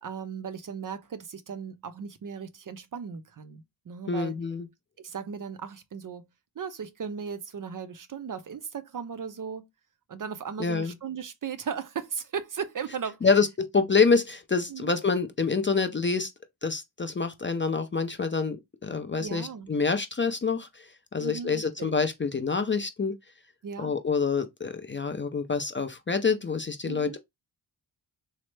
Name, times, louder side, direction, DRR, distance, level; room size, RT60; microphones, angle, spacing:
voice 1, 0.0-4.4 5.0-6.3 6.6-9.7 10.1-13.2 14.7-14.9 19.2-19.8 21.2-21.9 23.6-23.9 26.9-27.2, right 6 dB, 45° right, 0.5 m, -37 dB
voice 2, 4.1-4.7 10.6-10.9 13.2-13.5 13.7-16.3 16.6-23.1 23.8-27.2, left 4 dB, 25° left, 0.4 m, -27 dB
3.1 x 2.0 x 3.1 m
cardioid pair, 50°, 48 cm